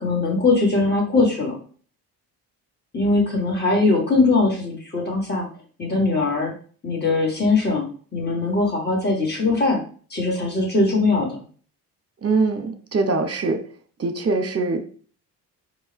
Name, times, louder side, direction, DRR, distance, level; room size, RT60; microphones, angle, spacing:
voice 1, 0.0-1.6 2.9-5.5 5.8-6.5 6.8-7.9 8.1-9.8 10.1-11.4, left 3 dB, 20° left, -3 dB, 2.1 m, -21 dB
voice 2, 12.2-13.6 14.0-14.9, right 3 dB, 30° right, 7 dB, 1.0 m, -23 dB
4.5 x 2.8 x 3.5 m, 0.41 s
hypercardioid pair, 50°, 45 cm